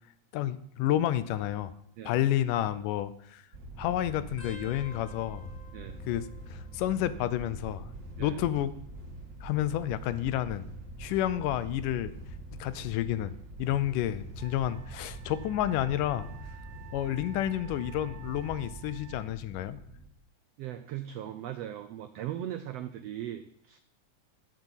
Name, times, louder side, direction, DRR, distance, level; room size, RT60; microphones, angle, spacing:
voice 1, 0.3-1.7 2.1-3.4 3.8-5.5 6.1-7.9 8.2-8.7 9.4-10.7 11.0-12.1 12.5-16.3 16.9-19.8, left 12 dB, 85° left, 14 dB, 2.3 m, -30 dB
sound 1, 3.5-20.1, right 2 dB, 40° right, 2.2 m, -44 dB
sound 2, 4.4-7.6 7.8-8.4 9.4-10.9 11.5-11.9 13.1-13.4 14.9-15.0, left 2 dB, 25° left, 7.3 m, -54 dB
Wind instrument woodwind instrument, 14.4-19.3, right 11 dB, 70° right, 1.5 m, -53 dB
voice 2, 20.6-23.8, right 11 dB, 90° right, 10 dB, 1.4 m, -39 dB
11.5 x 7.8 x 8.1 m, 0.72 s
omnidirectional pair, 3.7 m